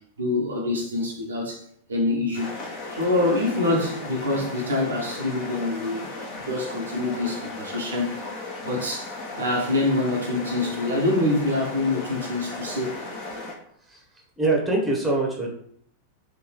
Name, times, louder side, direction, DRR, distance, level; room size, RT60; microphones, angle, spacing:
voice 1, 0.2-1.6 1.9-2.5 2.9-6.1 6.4-8.1 8.6-13.0, left 2 dB, 70° right, 0.8 m, -25 dB
sound 1, 2.3-13.5, left 2 dB, 40° left, 1.1 m, -36 dB
voice 2, 14.4-15.5, right 2 dB, 10° right, 1.0 m, -23 dB
3.7 x 2.7 x 3.0 m
figure-of-eight pair, 90°, 0 cm